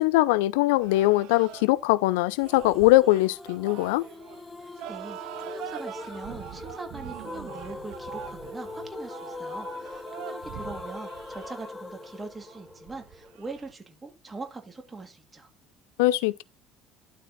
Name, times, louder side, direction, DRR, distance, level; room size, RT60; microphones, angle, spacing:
voice 1, 0.0-4.0 16.0-16.4, left 18 dB, 70° left, 0.5 m, -21 dB
sound 1, 0.8-13.7, right 12 dB, 65° right, 0.8 m, -43 dB
sound 2, 2.4-13.4, left 3 dB, 20° left, 0.7 m, -41 dB
voice 2, 4.6-15.5, right 3 dB, 20° right, 2.7 m, -42 dB
12.0 x 4.2 x 4.1 m
hypercardioid pair, 60°, 0 cm